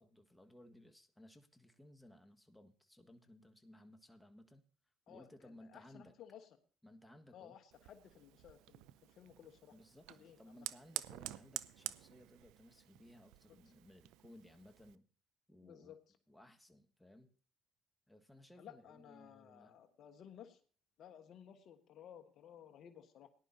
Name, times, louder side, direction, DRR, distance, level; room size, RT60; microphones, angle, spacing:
voice 1, 0.0-4.6 5.1-6.1 6.8-7.6 9.7-15.0 15.5-15.9 16.3-17.3 18.1-19.8, left 1 dB, 10° left, 6 dB, 1.6 m, -60 dB
voice 2, 5.1-6.5 7.3-9.7 10.1-10.7 15.6-16.0 18.6-20.6 21.0-23.3, left 9 dB, 60° left, 7 dB, 1.3 m, -57 dB
Fire, 7.7-15.0, right 16 dB, 80° right, 0.5 m, -49 dB
19.0 x 11.0 x 2.8 m, 0.41 s
supercardioid pair, 65°, 0 cm